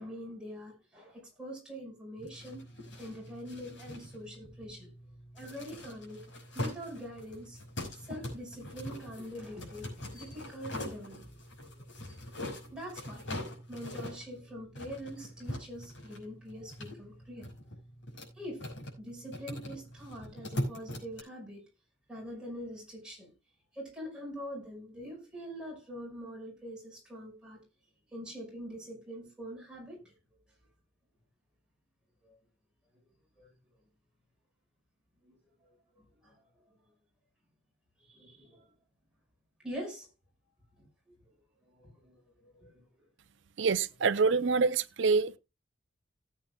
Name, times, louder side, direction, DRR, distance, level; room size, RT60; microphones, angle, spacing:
voice 1, 0.0-2.7 2.9-4.9 5.3-6.2 6.5-7.6 7.9-11.4 11.7-12.4 12.7-13.2 13.7-17.5 18.3-21.6 22.1-23.3 23.7-27.6 28.1-30.1 32.2-32.4 33.3-33.5 35.2-36.6 38.0-38.7 39.6-40.1 40.8-41.2 41.6-43.1, equal, 5° right, 5.6 m, -44 dB
sound 1, 2.2-21.2, left 1 dB, 70° left, 5.6 m, -42 dB
voice 2, 43.6-45.4, right 4 dB, 65° right, 0.6 m, -26 dB
18.5 x 8.6 x 2.3 m
head